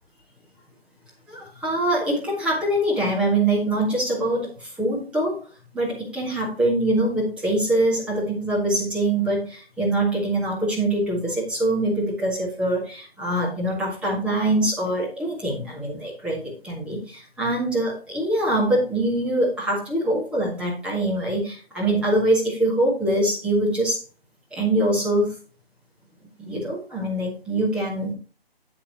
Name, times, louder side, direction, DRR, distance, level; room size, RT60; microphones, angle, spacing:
voice 1, 1.3-5.4 5.7-24.0 24.5-25.3 26.4-28.1, right 1 dB, 5° right, -5 dB, 1.8 m, -24 dB
8.6 x 8.5 x 2.9 m, 0.35 s
figure-of-eight pair, 145°, 30 cm